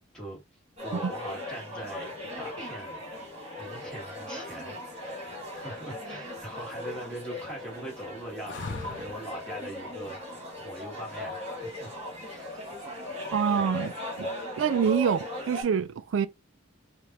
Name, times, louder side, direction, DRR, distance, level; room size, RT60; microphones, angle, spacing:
voice 1, 0.8-3.0 3.6-4.9 5.5-11.9 12.2-12.7 13.5-13.7 14.8-14.9, right 1 dB, 5° left, 1.4 m, -41 dB
sound 1, 0.8-15.6, left 1 dB, 30° right, 1.7 m, -38 dB
sound 2, 8.5-9.4 12.0-12.6, left 3 dB, 60° left, 0.6 m, -39 dB
voice 2, 13.3-13.9 14.2-14.3 14.6-16.3, right 7 dB, 75° right, 0.4 m, -26 dB
5.0 x 2.1 x 2.8 m
head